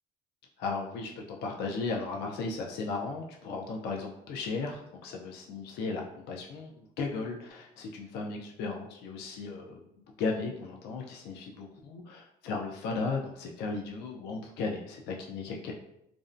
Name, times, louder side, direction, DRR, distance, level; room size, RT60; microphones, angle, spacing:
voice 1, 0.6-9.8 10.2-15.7, left 4 dB, 75° left, 1 dB, 0.4 m, -36 dB
2.5 x 2.1 x 2.4 m, 0.79 s
cardioid pair, 110°, 17 cm